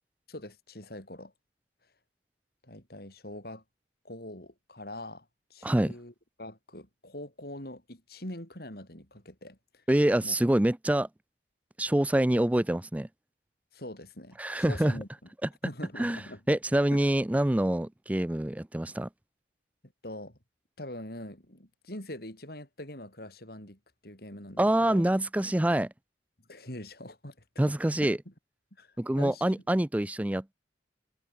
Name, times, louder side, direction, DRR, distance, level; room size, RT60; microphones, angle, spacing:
voice 1, 0.3-1.3 2.6-3.6 4.0-5.3 5.5-9.8 10.2-10.4 13.7-15.1 15.6-16.4 16.9-17.0 20.0-20.4 20.8-25.1 26.5-28.1 28.8-29.4, left 1 dB, 55° left, 7.1 m, -43 dB
voice 2, 5.6-5.9 9.9-11.1 11.8-13.1 14.4-15.0 15.4-15.5 16.0-19.1 24.6-25.9 27.6-28.2 29.0-30.5, right 1 dB, 10° right, 0.4 m, -26 dB
head